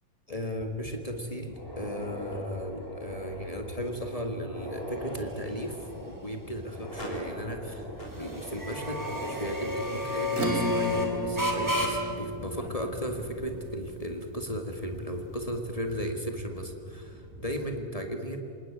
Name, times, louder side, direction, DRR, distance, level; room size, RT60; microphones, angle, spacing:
voice 1, 0.3-7.9 8.2-18.4, equal, 40° left, 4 dB, 0.5 m, -35 dB
sound 1, 0.6-17.8, left 1 dB, 5° right, 2.8 m, -36 dB
sound 2, 1.4-12.2 12.5-12.6 13.4-13.5 14.1-14.2 15.5-15.8, equal, 15° left, 6.5 m, -42 dB
Acoustic guitar / Strum, 10.3-15.2, equal, 25° right, 2.7 m, -34 dB
27.0 x 19.5 x 8.8 m, 2.6 s
omnidirectional pair, 3.8 m